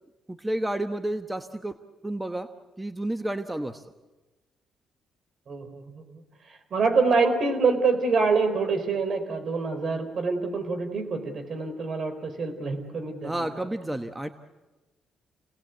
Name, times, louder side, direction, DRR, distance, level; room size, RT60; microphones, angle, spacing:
voice 1, 0.3-1.7 2.0-2.5 2.8-3.8 13.2-14.3, right 1 dB, 10° right, 8 dB, 1.1 m, -30 dB
voice 2, 5.5-6.0 6.4-13.5, right 4 dB, 55° right, 8 dB, 4.2 m, -26 dB
28.0 x 18.5 x 8.2 m, 1.1 s
cardioid pair, 90°, 0 cm